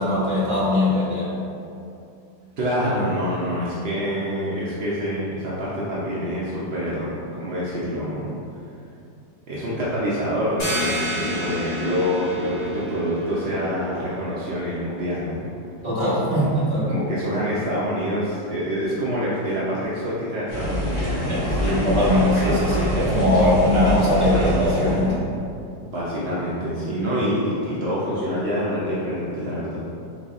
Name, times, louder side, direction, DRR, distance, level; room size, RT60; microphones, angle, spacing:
voice 1, 0.0-1.4 15.8-16.9 21.3-25.2, left 1 dB, 20° right, -11 dB, 1.1 m, -21 dB
voice 2, 2.6-8.3 9.5-15.4 16.4-16.5 16.9-21.5 25.9-29.8, equal, 70° right, -8 dB, 0.5 m, -26 dB
sound 1, 10.6-16.0, equal, 55° left, 1.6 m, -31 dB
sound 2, 20.5-25.1, equal, 35° left, 1.7 m, -25 dB
4.5 x 4.0 x 2.4 m, 2.5 s
omnidirectional pair, 1.9 m